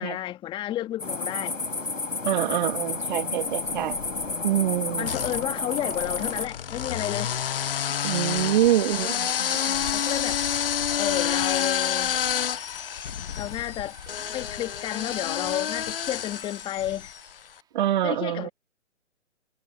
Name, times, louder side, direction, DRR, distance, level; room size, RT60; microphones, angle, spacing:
voice 1, 0.0-1.6 5.0-7.4 9.9-10.4 11.0-12.2 13.4-14.0 14.3-17.1 18.0-18.5, left 13 dB, 15° left, 1.7 m, -31 dB
sound 1, 1.0-6.5, left 3 dB, 85° left, 2.6 m, -31 dB
voice 2, 2.2-4.0 4.4-5.1 8.0-9.9 17.7-18.5, right 12 dB, 40° right, 2.0 m, -25 dB
sound 2, 3.6-4.3 5.0-17.3, left 9 dB, 50° left, 0.5 m, -29 dB
sound 3, 7.5-17.7, right 8 dB, 10° right, 2.3 m, -52 dB
figure-of-eight pair, 135°, 38 cm